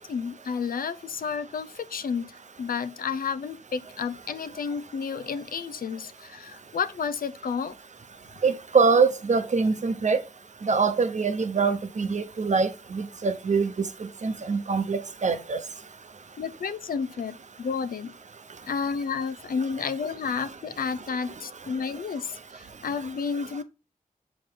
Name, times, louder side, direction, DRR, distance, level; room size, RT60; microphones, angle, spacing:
voice 1, 0.0-7.7 16.4-18.1 18.7-23.6, left 6 dB, 90° left, 0.6 m, -31 dB
voice 2, 8.4-10.2 10.7-13.7 14.2-15.6, right 4 dB, 55° right, 0.9 m, -24 dB
6.9 x 4.9 x 3.7 m
wide cardioid pair, 70°, 14 cm